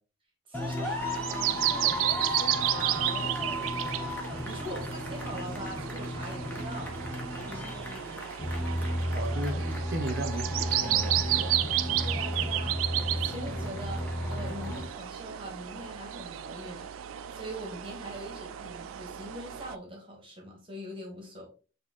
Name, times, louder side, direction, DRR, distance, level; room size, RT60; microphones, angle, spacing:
sound 1, 0.5-14.8, equal, 10° left, 0.7 m, -34 dB
voice 1, 0.5-6.9 12.0-12.8 13.1-14.0 14.3-16.9 17.3-21.5, right 1 dB, 25° right, 1.3 m, -42 dB
sound 2, 0.8-19.8, right 13 dB, 90° right, 0.3 m, -33 dB
voice 2, 9.1-11.6, right 2 dB, 55° right, 0.7 m, -36 dB
6.2 x 2.7 x 2.9 m
head